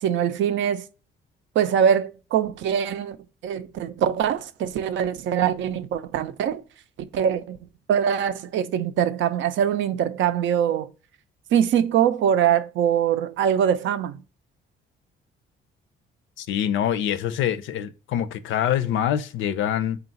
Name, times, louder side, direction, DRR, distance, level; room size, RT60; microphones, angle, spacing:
voice 1, 0.0-0.9 1.6-3.2 3.4-6.6 7.1-7.6 7.9-10.9 11.5-14.2, right 9 dB, 75° right, 0.4 m, -23 dB
voice 2, 16.4-20.0, left 10 dB, 80° left, 0.5 m, -25 dB
3.9 x 2.3 x 3.9 m
cardioid pair, 90°, 20 cm